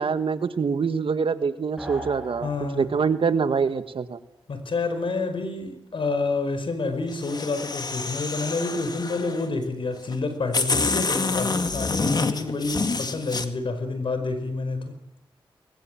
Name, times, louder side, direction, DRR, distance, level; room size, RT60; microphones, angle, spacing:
voice 1, 0.0-4.2, right 5 dB, 70° right, 1.7 m, -25 dB
sound 1, 1.8-3.3, right 1 dB, 5° right, 7.1 m, -39 dB
voice 2, 2.4-2.8 4.5-15.0, left 3 dB, 65° left, 5.1 m, -28 dB
sound 2, 7.1-9.5 10.1-10.2 10.5-13.5, left 3 dB, 45° left, 2.1 m, -27 dB
22.0 x 20.5 x 9.2 m
cardioid pair, 60°, 9 cm